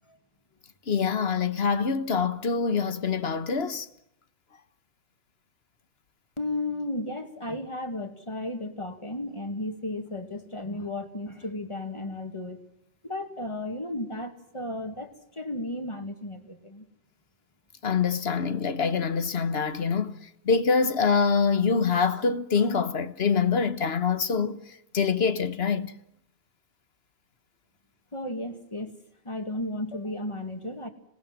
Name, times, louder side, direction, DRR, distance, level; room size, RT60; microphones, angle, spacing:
voice 1, 0.9-3.9 17.8-20.2 20.4-24.6 24.9-25.9, left 5 dB, 75° left, 1.5 m, -25 dB
voice 2, 6.4-12.6 13.0-16.9 28.1-28.9 29.2-30.9, left 1 dB, 30° left, 2.2 m, -34 dB
26.0 x 19.0 x 7.5 m
omnidirectional pair, 1.1 m